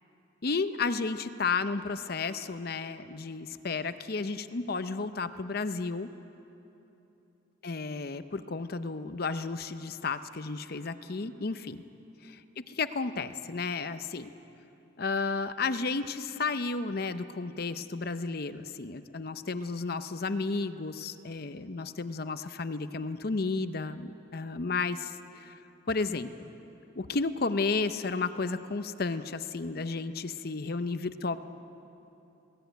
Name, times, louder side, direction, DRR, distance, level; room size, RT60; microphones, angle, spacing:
voice 1, 0.4-6.1 7.6-11.8 12.7-14.3 15.0-25.5 25.9-26.3 27.0-31.4, left 4 dB, 50° left, 11 dB, 0.7 m, -32 dB
21.0 x 17.0 x 9.2 m, 3.0 s
head